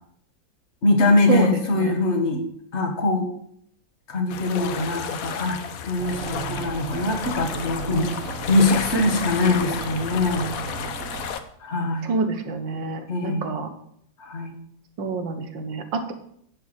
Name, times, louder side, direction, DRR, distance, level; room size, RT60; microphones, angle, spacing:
voice 1, 0.8-2.4 2.7-3.3 4.1-5.6 5.8-8.2 8.5-10.5 11.6-12.1 13.1-13.5 14.2-14.5, left 2 dB, 40° left, 4 dB, 1.6 m, -22 dB
sound 1, 4.3-11.4, left 7 dB, 60° left, 1.0 m, -32 dB
sound 2, 6.0-11.3, right 5 dB, 50° right, 1.2 m, -35 dB
voice 2, 12.0-13.7 15.0-16.1, right 4 dB, 70° right, 7 dB, 1.8 m, -27 dB
10.0 x 4.6 x 7.8 m, 0.67 s
omnidirectional pair, 2.1 m